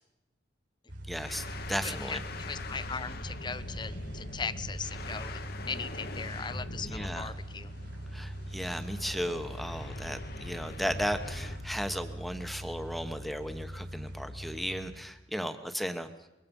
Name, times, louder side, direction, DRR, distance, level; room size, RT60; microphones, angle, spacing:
sound 1, 0.9-15.0, right 1 dB, 55° right, 5.1 m, -42 dB
voice 1, 1.1-2.2 6.9-7.3 8.1-16.1, equal, ahead, 8 dB, 1.1 m, -35 dB
sound 2, 1.2-11.7, left 2 dB, 50° left, 1.1 m, -43 dB
voice 2, 1.8-7.7, left 5 dB, 25° left, 14 dB, 0.7 m, -39 dB
24.5 x 22.0 x 5.4 m, 0.99 s
head